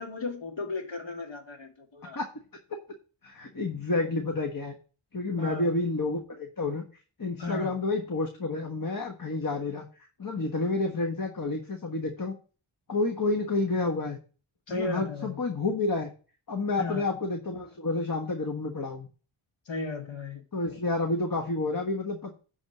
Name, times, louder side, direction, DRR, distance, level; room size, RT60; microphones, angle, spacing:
voice 1, 0.0-2.2 5.4-5.7 7.4-7.7 14.7-15.4 16.8-17.0 19.7-20.4, left 3 dB, 65° left, 2.0 m, -35 dB
voice 2, 3.2-4.7 5.1-6.8 7.2-12.3 12.9-14.2 14.7-16.1 16.5-19.1 20.5-22.3, left 3 dB, 45° left, 1.4 m, -29 dB
10.5 x 3.7 x 6.6 m
cardioid pair, 60°, 48 cm